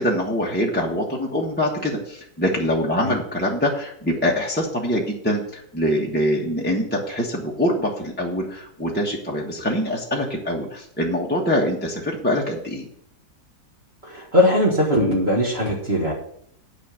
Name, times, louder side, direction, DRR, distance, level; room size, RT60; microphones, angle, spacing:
voice 1, 0.0-12.9, equal, 5° left, -3 dB, 1.2 m, -24 dB
voice 2, 14.0-16.1, left 1 dB, 40° right, -3 dB, 1.9 m, -20 dB
9.7 x 5.4 x 7.5 m, 0.69 s
omnidirectional pair, 1.8 m